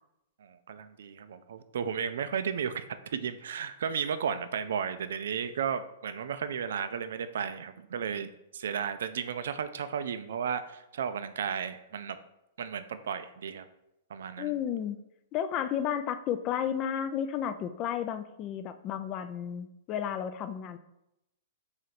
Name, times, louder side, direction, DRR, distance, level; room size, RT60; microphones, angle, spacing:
voice 1, 0.4-12.2 12.6-13.6 14.1-14.5, right 7 dB, 75° right, 11 dB, 0.3 m, -34 dB
voice 2, 14.4-15.0 15.3-20.8, left 9 dB, 35° left, 10 dB, 0.3 m, -32 dB
3.2 x 2.7 x 4.0 m, 0.84 s
hypercardioid pair, 130°, 0 cm